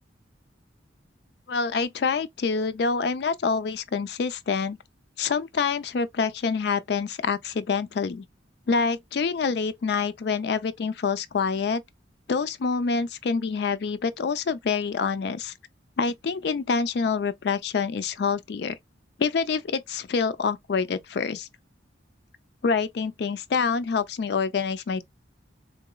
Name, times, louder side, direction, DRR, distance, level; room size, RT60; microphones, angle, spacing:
voice 1, 1.5-4.8 5.2-8.2 8.7-11.8 12.3-15.5 16.0-18.8 19.2-21.5 22.6-25.0, left 5 dB, 55° left, 0.4 m, -26 dB
3.7 x 2.9 x 2.2 m
head